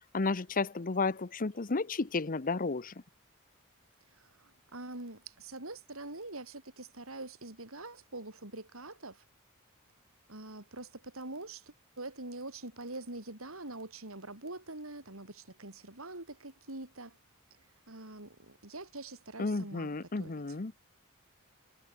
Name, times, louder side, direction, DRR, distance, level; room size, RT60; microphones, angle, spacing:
voice 1, 0.1-2.9 19.4-20.7, left 3 dB, 40° left, 0.8 m, -32 dB
voice 2, 4.1-9.2 10.3-17.2 17.9-19.9 20.2-20.6, right 2 dB, 75° right, 5.3 m, -44 dB
head